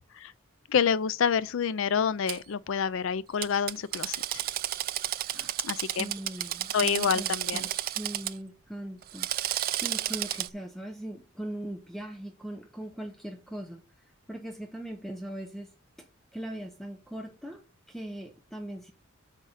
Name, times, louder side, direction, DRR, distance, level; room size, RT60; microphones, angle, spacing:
voice 1, 0.7-4.2 5.6-6.1 6.7-7.7, left 7 dB, 70° left, 0.4 m, -27 dB
Drill, 2.3-2.4 3.4-8.3 9.0-10.5, right 13 dB, 45° right, 0.3 m, -32 dB
voice 2, 5.2-9.3 9.7-13.8 14.3-15.7 16.0-16.1 16.3-18.9, right 1 dB, ahead, 0.8 m, -40 dB
8.1 x 3.7 x 6.6 m
head